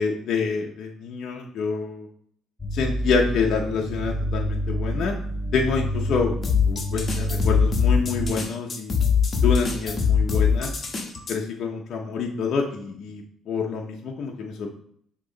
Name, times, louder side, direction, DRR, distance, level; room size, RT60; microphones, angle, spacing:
voice 1, 0.0-2.1 2.7-5.2 5.5-6.3 6.6-8.9 9.4-10.7 11.3-14.7, left 5 dB, 65° left, 0 dB, 0.8 m, -27 dB
sound 1, 2.6-8.3, equal, 10° left, 2.2 m, -28 dB
sound 2, 6.4-11.4, left 6 dB, 40° left, 1.2 m, -22 dB
6.7 x 3.0 x 5.0 m, 0.65 s
cardioid pair, 100°, 0 cm